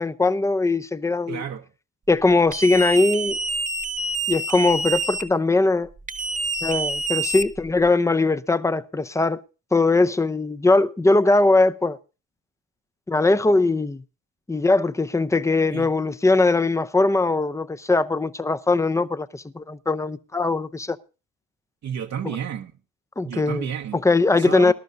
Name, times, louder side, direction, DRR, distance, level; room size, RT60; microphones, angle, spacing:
voice 1, 0.0-1.4 2.1-3.4 4.3-5.9 6.6-9.4 9.7-12.0 13.1-14.0 14.5-21.0 23.2-23.7 24.0-24.7, left 3 dB, 10° left, 0.5 m, -20 dB
voice 2, 1.3-1.7 15.7-15.9 21.8-22.7 23.2-24.0 24.3-24.7, right 8 dB, 55° right, 0.8 m, -31 dB
sound 1, 2.5-5.2 6.1-7.9, right 3 dB, 25° right, 1.1 m, -27 dB
20.5 x 12.0 x 2.6 m
cardioid pair, 95°, 33 cm